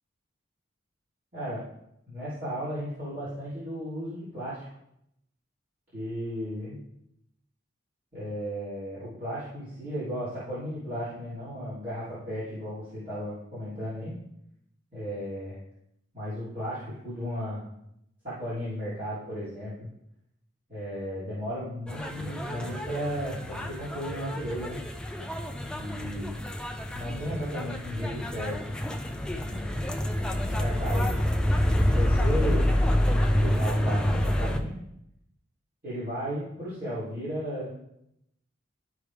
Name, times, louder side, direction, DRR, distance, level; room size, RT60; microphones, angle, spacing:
voice 1, 1.3-1.6 2.1-4.6 5.9-6.8 8.1-14.1 14.9-15.6 16.1-17.7 18.2-19.9 20.7-24.8 25.7-26.4 26.9-28.8 29.3-29.8 30.2-31.2 31.7-32.7 33.4-34.8 35.8-37.7, equal, 40° right, -13 dB, 3.5 m, -35 dB
sound 1, 21.9-34.6, left 1 dB, 5° left, 0.5 m, -27 dB
12.5 x 4.9 x 3.5 m, 0.79 s
head